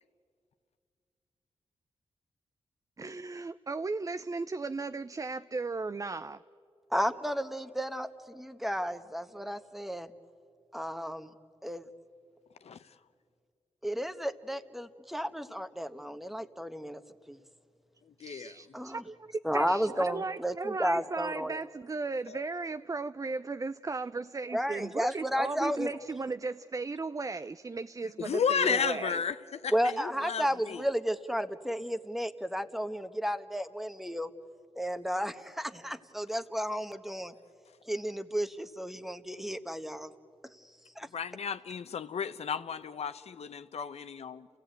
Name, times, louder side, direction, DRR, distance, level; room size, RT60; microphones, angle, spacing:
voice 1, 3.0-6.4 18.2-29.2, right 3 dB, 30° right, 0.5 m, -36 dB
voice 2, 6.9-10.1 10.7-11.3 11.6-11.8 13.8-17.0 17.3-17.4 18.7-19.0 19.4-21.6 24.5-25.9 29.7-34.3 34.8-37.3 37.9-40.1 41.0-41.1, equal, ahead, 1.3 m, -33 dB
voice 3, 18.0-18.5 22.3-22.7 28.2-30.8 41.1-44.5, left 7 dB, 70° left, 0.9 m, -33 dB
28.5 x 16.5 x 9.2 m
cardioid pair, 50°, 11 cm